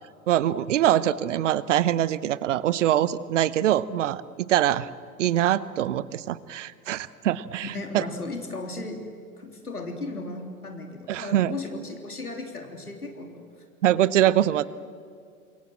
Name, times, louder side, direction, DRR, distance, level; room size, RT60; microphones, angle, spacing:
voice 1, 0.3-4.2 4.5-4.9 5.2-7.7 7.9-8.0 11.1-11.5 13.8-14.7, right 12 dB, 55° right, 18 dB, 1.0 m, -23 dB
voice 2, 7.7-9.0 9.4-13.5, left 2 dB, 85° left, 4 dB, 3.2 m, -36 dB
27.5 x 23.0 x 7.5 m, 2.3 s
figure-of-eight pair, 95°, 44 cm